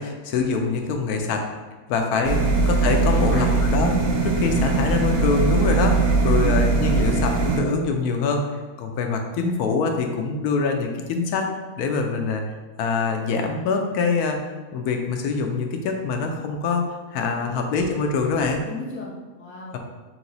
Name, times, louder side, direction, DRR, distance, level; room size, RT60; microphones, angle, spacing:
voice 1, 0.0-1.4 1.9-3.9 4.2-8.5 8.8-11.5 11.8-12.5 12.8-14.4 14.7-16.8 17.1-18.7, left 4 dB, 85° left, 4 dB, 1.1 m, -24 dB
sound 1, 2.3-7.6, right 4 dB, 70° right, 1.1 m, -20 dB
voice 2, 3.0-3.6 6.0-6.6 17.4-17.6 18.3-19.8, left 1 dB, 20° left, -4 dB, 0.3 m, -36 dB
3.7 x 2.9 x 3.9 m, 1.3 s
omnidirectional pair, 1.6 m